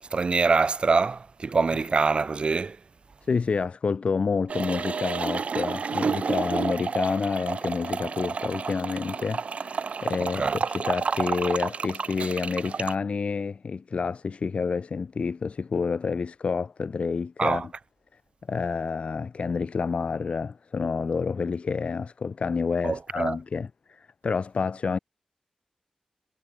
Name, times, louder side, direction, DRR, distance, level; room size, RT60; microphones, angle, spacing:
voice 1, 0.1-2.8 10.4-10.6 17.4-17.6 22.8-23.4, right 4 dB, 55° right, 1.1 m, -24 dB
voice 2, 3.2-17.7 18.5-25.0, left 5 dB, 65° left, 1.4 m, -29 dB
sound 1, 4.5-12.9, right 5 dB, 80° right, 3.8 m, -30 dB
wide cardioid pair, 90°, 2 cm